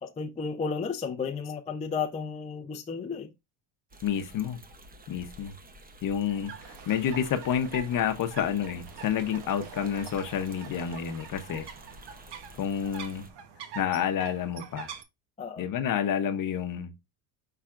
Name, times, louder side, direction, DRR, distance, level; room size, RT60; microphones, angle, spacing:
voice 1, 0.0-3.3 15.4-15.6, left 5 dB, 15° left, 0.4 m, -33 dB
sound 1, 3.9-13.3, right 1 dB, 20° right, 0.7 m, -51 dB
voice 2, 4.0-4.6 5.1-5.5 6.0-6.5 6.9-11.7 12.6-13.2 13.8-14.9 15.6-16.9, left 8 dB, 40° left, 0.8 m, -29 dB
sound 2, 6.3-15.0, right 7 dB, 55° right, 1.0 m, -45 dB
5.8 x 3.3 x 2.4 m
cardioid pair, 115°, 49 cm